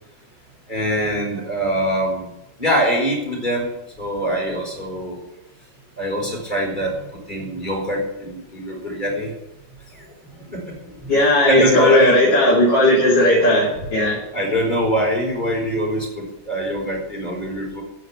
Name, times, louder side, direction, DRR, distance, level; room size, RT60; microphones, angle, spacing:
voice 1, 0.7-2.3 2.6-5.2 6.0-9.3 9.9-12.2 14.3-17.8, equal, 25° left, -1 dB, 4.9 m, -23 dB
voice 2, 11.1-14.2, left 1 dB, 75° left, -4 dB, 3.3 m, -16 dB
14.5 x 6.5 x 9.9 m, 0.89 s
omnidirectional pair, 2.0 m